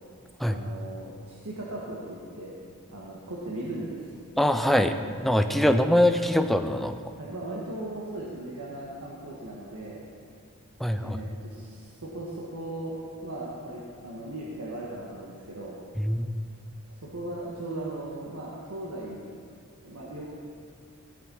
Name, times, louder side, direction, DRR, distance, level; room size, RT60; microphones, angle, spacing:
voice 1, 0.5-2.5 2.9-4.2 7.2-10.0 11.0-15.8 17.0-19.3 19.8-20.3, right 1 dB, 75° right, -5 dB, 1.5 m, -38 dB
voice 2, 4.4-7.0 10.8-11.2 16.0-16.3, left 1 dB, ahead, 7 dB, 0.4 m, -23 dB
15.5 x 6.8 x 5.4 m, 2.2 s
head